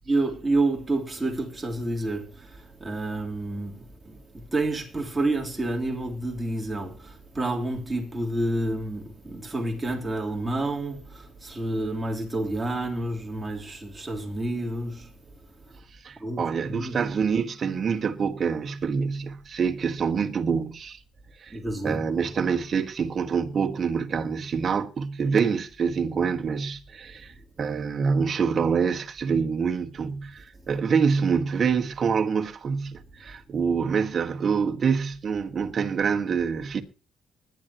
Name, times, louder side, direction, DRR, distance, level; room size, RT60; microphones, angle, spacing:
voice 1, 0.1-2.3 2.8-3.8 4.1-4.2 4.5-7.1 7.4-11.0 11.4-15.1 16.2-16.4 16.7-17.0 21.5-22.0, right 2 dB, 15° right, 3.4 m, -28 dB
voice 2, 16.0-21.0 21.4-21.6 21.8-27.3 27.6-36.8, right 6 dB, 50° right, 1.6 m, -26 dB
20.5 x 10.5 x 3.0 m
cardioid pair, 90°, 0 cm